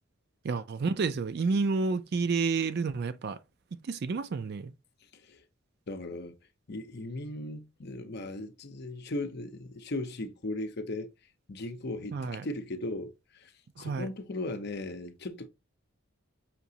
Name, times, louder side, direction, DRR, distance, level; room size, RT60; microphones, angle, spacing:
voice 1, 0.4-3.4 3.9-4.7 12.1-12.4 13.8-14.1, right 4 dB, 50° right, 0.4 m, -30 dB
voice 2, 5.9-6.3 6.7-11.1 11.5-13.5 13.8-15.5, left 2 dB, 50° left, 0.7 m, -37 dB
5.8 x 2.9 x 2.7 m
head